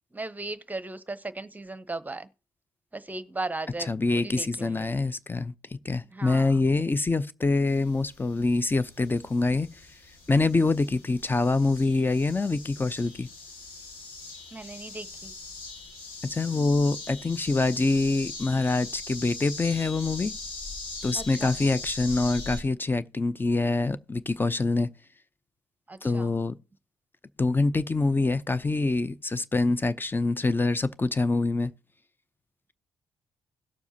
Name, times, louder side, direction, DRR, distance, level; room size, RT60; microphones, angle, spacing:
voice 1, 0.1-2.3 2.9-4.9 6.1-6.7 14.5-15.3 21.1-21.6 25.9-26.3, right 2 dB, 20° right, 0.9 m, -37 dB
voice 2, 3.8-5.5 5.8-9.8 10.3-13.3 16.2-20.3 21.0-24.9 26.0-26.6 27.4-31.7, left 3 dB, 25° left, 0.6 m, -25 dB
sound 1, 7.7-22.6, left 3 dB, 75° left, 2.3 m, -41 dB
17.5 x 7.0 x 2.8 m
hypercardioid pair, 40°, 9 cm